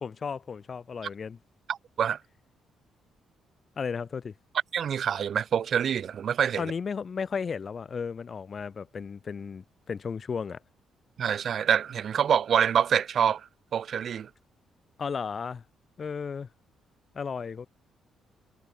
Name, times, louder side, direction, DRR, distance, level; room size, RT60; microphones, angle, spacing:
voice 1, 0.0-1.4 3.8-4.3 6.6-10.6 15.0-15.6 16.0-16.5 17.1-17.7, left 6 dB, 40° left, 1.0 m, -34 dB
voice 2, 1.7-2.2 4.7-6.6 11.2-13.4 13.7-14.3, right 8 dB, 55° right, 1.0 m, -26 dB
cardioid pair, 90°, 0 cm